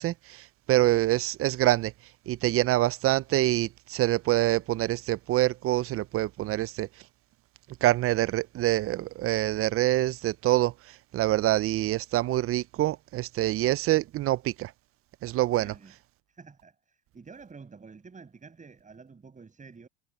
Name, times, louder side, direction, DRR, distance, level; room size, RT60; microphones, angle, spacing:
voice 1, 0.0-1.9 2.3-6.9 7.8-10.7 11.1-14.7 15.2-15.7, right 15 dB, 40° right, 0.6 m, -25 dB
voice 2, 15.5-15.9 16.3-19.9, right 5 dB, 20° right, 6.8 m, -49 dB
supercardioid pair, 100°, 37 cm